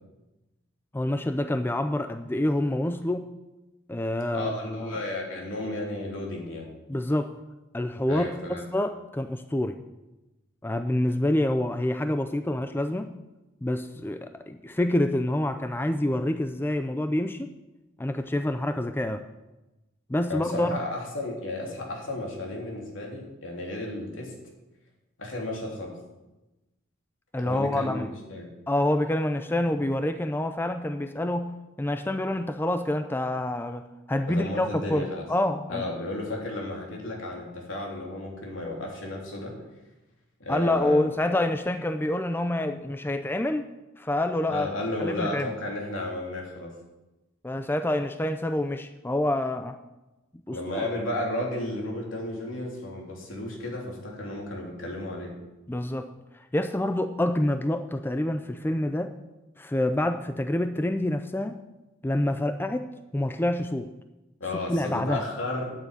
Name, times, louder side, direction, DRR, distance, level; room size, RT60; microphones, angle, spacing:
voice 1, 0.9-3.3 3.9-5.0 6.9-7.3 7.7-9.8 10.6-13.1 13.6-17.5 18.0-19.2 20.1-20.8 27.3-28.1 28.7-35.9 40.5-43.7 44.0-44.7 45.0-45.5 47.4-49.8 50.5-50.9 55.7-56.1 56.5-59.2 59.6-61.6 62.0-62.9 63.1-63.9 64.7-65.2, left 1 dB, 10° left, 8 dB, 0.5 m, -27 dB
voice 2, 4.3-6.7 8.1-8.9 20.3-24.3 25.2-25.9 27.4-28.5 34.3-35.2 35.7-39.6 40.4-41.0 44.5-46.7 50.5-55.3 64.4-65.7, left 1 dB, 75° left, -1 dB, 3.4 m, -33 dB
9.1 x 8.8 x 8.3 m, 1.0 s
head